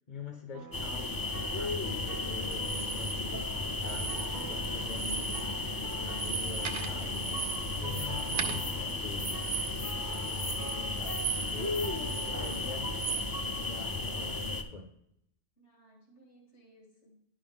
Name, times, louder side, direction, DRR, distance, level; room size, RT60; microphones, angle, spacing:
voice 1, 0.1-9.4 10.7-14.9, left 4 dB, 45° left, 4 dB, 0.9 m, -46 dB
sound 1, 0.5-13.8, right 4 dB, 45° right, 0.8 m, -46 dB
sound 2, 0.7-14.6, left 3 dB, 25° left, 0.5 m, -34 dB
sound 3, 2.5-3.1 3.8-4.6 4.9-5.5 5.8-11.7 12.0-13.3, right 8 dB, 75° right, 0.9 m, -38 dB
voice 2, 6.7-9.2 15.6-17.2, left 2 dB, 80° left, -2 dB, 2.3 m, -56 dB
10.5 x 5.6 x 3.5 m, 0.79 s
omnidirectional pair, 1.2 m